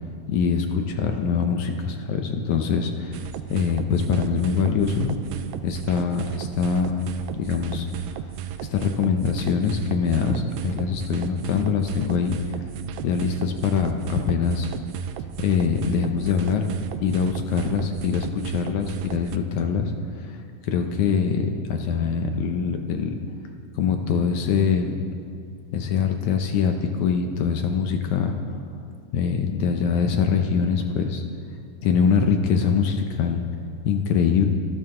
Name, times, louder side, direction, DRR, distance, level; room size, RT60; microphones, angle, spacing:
voice 1, 0.3-3.2 3.5-5.2 5.6-7.1 7.3-7.9 8.7-12.4 13.0-14.7 15.4-16.7 17.0-19.9 20.2-20.3 20.6-23.2 23.8-25.0 25.7-28.6 29.1-31.2 31.8-33.4 33.8-34.5, left 6 dB, 70° left, 5 dB, 2.0 m, -23 dB
sound 1, 3.1-19.4, right 11 dB, 80° right, 2.4 m, -34 dB
28.0 x 12.5 x 3.8 m, 2.6 s
omnidirectional pair, 4.0 m